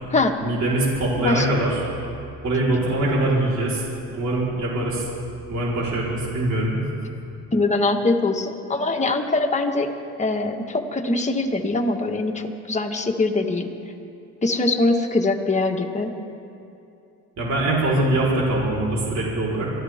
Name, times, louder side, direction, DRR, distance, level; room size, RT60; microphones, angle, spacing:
voice 1, 0.4-1.8 2.4-3.9 4.1-5.1 5.5-6.8 17.4-19.7, right 1 dB, 65° right, -5 dB, 4.3 m, -23 dB
voice 2, 7.5-9.9 10.2-13.7 14.4-16.1, left 2 dB, 25° left, 3 dB, 1.6 m, -22 dB
24.0 x 14.5 x 3.7 m, 2.7 s
cardioid pair, 90°, 30 cm